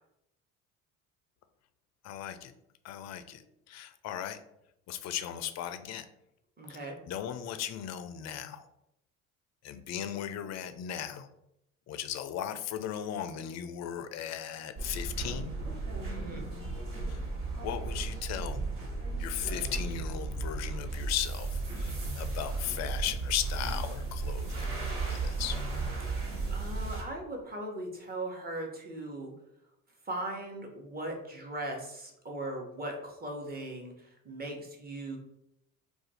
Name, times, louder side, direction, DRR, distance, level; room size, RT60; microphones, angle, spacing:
voice 1, 2.0-2.5 2.8-3.4 3.7-4.4 4.9-6.1 6.7-6.8 7.1-8.6 9.6-11.3 11.9-15.5 17.1-17.2 17.6-18.6 19.2-21.5 21.7-25.6, left 10 dB, 45° left, 10 dB, 0.4 m, -37 dB
voice 2, 6.6-7.0 16.1-16.5 26.5-29.3 30.1-35.2, right 1 dB, 25° right, 0 dB, 1.0 m, -39 dB
sound 1, 14.8-27.0, right 3 dB, 55° right, 1.3 m, -35 dB
2.4 x 2.3 x 4.1 m, 0.81 s
hypercardioid pair, 60°, 39 cm